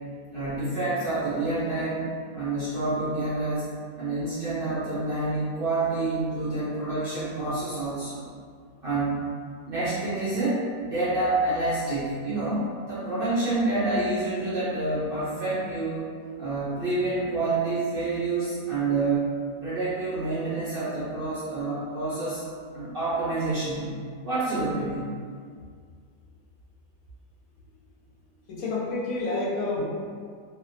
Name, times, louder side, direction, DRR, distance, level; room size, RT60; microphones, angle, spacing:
voice 1, 0.3-3.7 4.0-8.2 8.8-9.2 9.6-16.1 16.4-19.3 19.6-22.4 22.7-23.9 24.2-25.1, right 2 dB, 60° right, -12 dB, 0.6 m, -28 dB
voice 2, 28.5-29.8, left 2 dB, 70° left, -5 dB, 0.9 m, -28 dB
2.5 x 2.1 x 2.5 m, 2.1 s
omnidirectional pair, 1.6 m